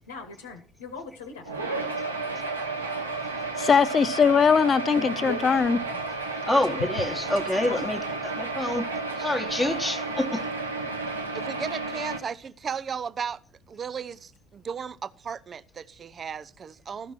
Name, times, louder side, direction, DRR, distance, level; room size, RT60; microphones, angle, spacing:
voice 1, 0.0-1.5 2.6-2.7 5.1-5.6 6.7-7.2 7.6-7.8 9.0-9.1, left 5 dB, 80° left, 1.1 m, -39 dB
sound 1, 1.5-12.2, right 3 dB, 90° right, 1.0 m, -32 dB
voice 2, 3.6-5.8, left 6 dB, 35° left, 0.5 m, -20 dB
voice 3, 4.9-5.4 6.5-8.9 9.2-10.4, left 1 dB, 5° left, 1.3 m, -27 dB
voice 4, 11.3-13.4 13.7-17.1, right 7 dB, 35° right, 0.5 m, -35 dB
13.0 x 5.8 x 5.9 m
figure-of-eight pair, 55°, 0 cm